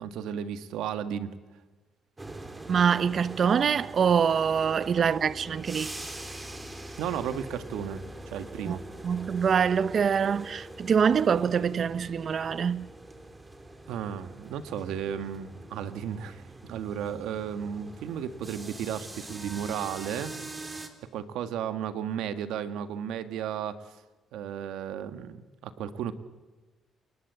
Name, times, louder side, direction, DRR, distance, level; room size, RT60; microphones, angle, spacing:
voice 1, 0.0-1.3 7.0-8.8 13.9-20.3 21.1-23.9 24.3-26.1, right 9 dB, 90° right, 1.7 m, -34 dB
sound 1, 2.2-20.9, right 2 dB, 20° right, 3.5 m, -43 dB
voice 2, 2.7-5.9 8.6-8.8 9.0-12.9, right 7 dB, 50° right, 0.9 m, -25 dB
29.0 x 20.5 x 8.3 m
cardioid pair, 90°, 0 cm